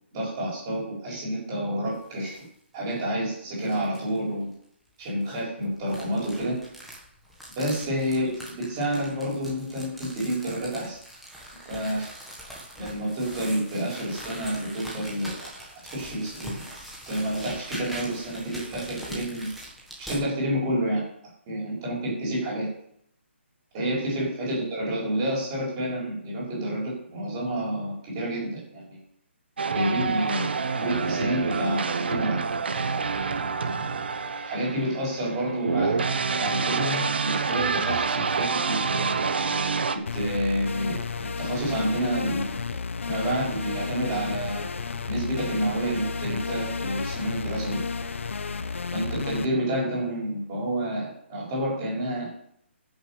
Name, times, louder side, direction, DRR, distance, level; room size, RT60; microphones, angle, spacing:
voice 1, 0.1-2.4 2.7-4.5 5.0-6.6 7.6-11.0 11.6-12.1 12.8-15.4 15.9-16.7 17.1-19.5 20.0-21.1 21.5-22.7 23.7-29.0 29.7-32.4 34.4-39.1 40.1-42.6 43.1-44.6 45.1-47.8 48.9-52.3, right 1 dB, 15° right, -5 dB, 4.2 m, -29 dB
sound 1, 1.9-2.5 2.9-3.0 3.6-4.2 5.0-20.2, right 1 dB, ahead, 1.3 m, -42 dB
sound 2, 29.6-39.9, right 4 dB, 55° right, 1.1 m, -27 dB
sound 3, 40.1-49.5, left 5 dB, 75° left, 0.9 m, -32 dB
11.5 x 6.5 x 7.0 m, 0.70 s
hypercardioid pair, 180°, 7 cm